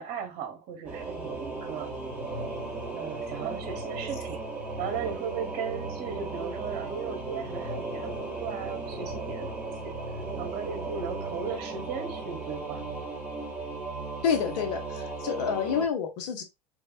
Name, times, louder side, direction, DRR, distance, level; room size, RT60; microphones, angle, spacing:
voice 1, 0.0-1.9 2.9-4.4 4.8-9.7 10.4-12.8, right 7 dB, 50° right, 1.2 m, -36 dB
Singing / Musical instrument, 0.9-15.9, right 3 dB, 5° right, 1.8 m, -36 dB
voice 2, 14.2-16.4, left 7 dB, 75° left, 1.2 m, -28 dB
3.3 x 3.3 x 2.5 m
hypercardioid pair, 90°, 21 cm